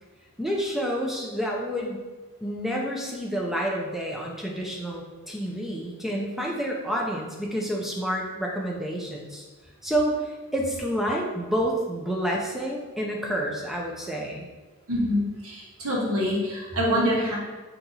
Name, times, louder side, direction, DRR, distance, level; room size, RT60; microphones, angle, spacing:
voice 1, 0.4-2.0 2.4-9.4 9.8-14.5, equal, ahead, -2 dB, 0.5 m, -29 dB
voice 2, 14.9-17.4, equal, 90° right, -4 dB, 1.3 m, -25 dB
4.1 x 2.9 x 4.0 m, 1.3 s
head